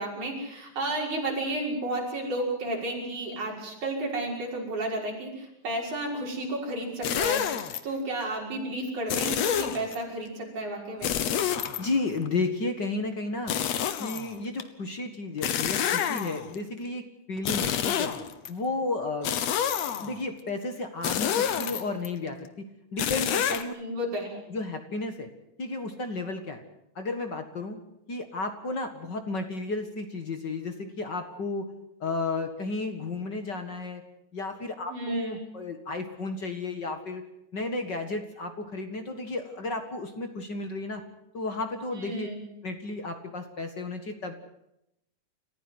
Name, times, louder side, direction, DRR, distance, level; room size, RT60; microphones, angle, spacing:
voice 1, 0.0-11.2 23.8-24.4 34.9-35.4 41.9-42.5, right 1 dB, 85° right, -1 dB, 7.3 m, -32 dB
sound 1, 7.0-7.8 9.1-10.0 11.0-12.3 13.5-14.6 15.4-16.5 17.4-18.5 19.2-20.2 21.0-22.1 23.0-23.6, left 9 dB, 65° left, 2.4 m, -28 dB
voice 2, 11.8-13.6 14.0-17.0 17.3-18.1 18.5-19.3 20.0-22.6 22.9-23.7 24.5-25.3 25.6-26.6 27.0-27.8 28.1-31.7 32.0-34.0 34.3-37.2 37.5-41.0 41.3-42.3 42.6-44.3, left 3 dB, 40° left, 7 dB, 2.1 m, -33 dB
29.0 x 15.0 x 8.0 m, 0.82 s
omnidirectional pair, 3.4 m